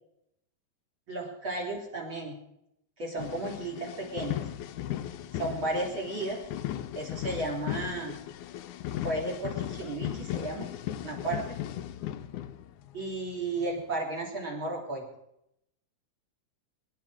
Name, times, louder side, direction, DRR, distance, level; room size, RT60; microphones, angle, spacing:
voice 1, 1.1-2.4 3.0-4.4 5.4-6.4 6.9-8.2 9.0-10.7 11.0-11.4 12.9-15.0, right 2 dB, 35° right, 0 dB, 3.9 m, -33 dB
sound 1, 3.2-13.1 13.6-13.8, left 12 dB, 75° left, 2.0 m, -37 dB
23.5 x 11.0 x 4.9 m, 0.79 s
omnidirectional pair, 3.9 m